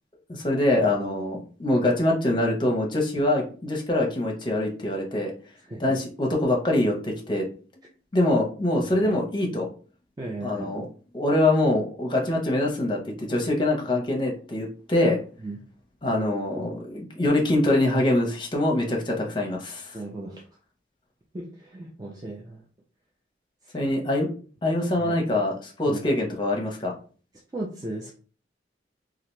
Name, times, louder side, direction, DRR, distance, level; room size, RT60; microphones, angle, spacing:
voice 1, 0.3-5.3 5.8-7.5 8.1-9.7 10.4-10.9 11.1-15.2 16.0-20.0 23.7-24.3 24.6-26.9, left 1 dB, 25° left, 0 dB, 0.7 m, -24 dB
voice 2, 5.6-6.0 8.8-9.2 10.2-10.7 15.4-15.6 19.9-20.5 21.3-22.6 23.6-23.7 25.0-25.2 25.9-26.0 27.5-28.1, right 2 dB, 20° right, -2 dB, 0.4 m, -36 dB
2.8 x 2.4 x 3.1 m, 0.39 s
head